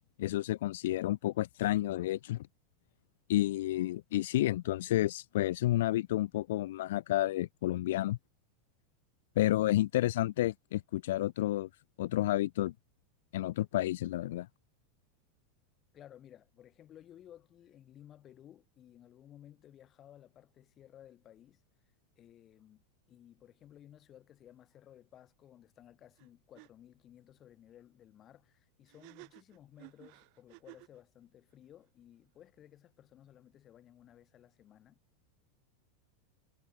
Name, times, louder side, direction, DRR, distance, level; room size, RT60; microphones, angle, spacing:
voice 1, 0.2-2.5 3.3-8.2 9.4-11.7 12.0-12.7 13.3-14.5, left 15 dB, 75° left, 0.5 m, -30 dB
voice 2, 15.9-21.6 22.2-35.0, left 11 dB, 25° left, 7.7 m, -57 dB
sound 1, 26.2-26.3 26.5-26.7 28.9-31.0, right 40 dB or more, 50° right, 4.4 m, -54 dB
supercardioid pair, 150°, 0 cm